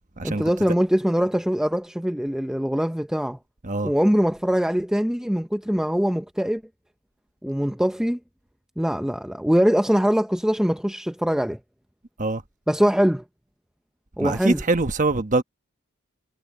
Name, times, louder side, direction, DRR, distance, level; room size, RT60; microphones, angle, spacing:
voice 1, 0.2-3.4 3.8-6.6 7.4-8.2 8.8-11.6 12.7-13.2 14.2-14.6, equal, 5° right, 0.5 m, -22 dB
voice 2, 14.2-15.4, right 3 dB, 35° right, 1.1 m, -23 dB
head